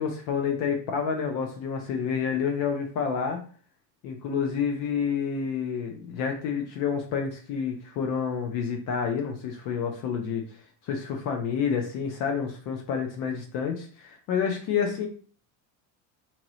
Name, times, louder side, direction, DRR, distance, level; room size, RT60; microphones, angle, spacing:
voice 1, 0.0-3.4 4.0-10.4 10.8-15.1, left 6 dB, 40° left, 3 dB, 0.5 m, -29 dB
3.0 x 2.9 x 3.9 m, 0.42 s
cardioid pair, 170°, 48 cm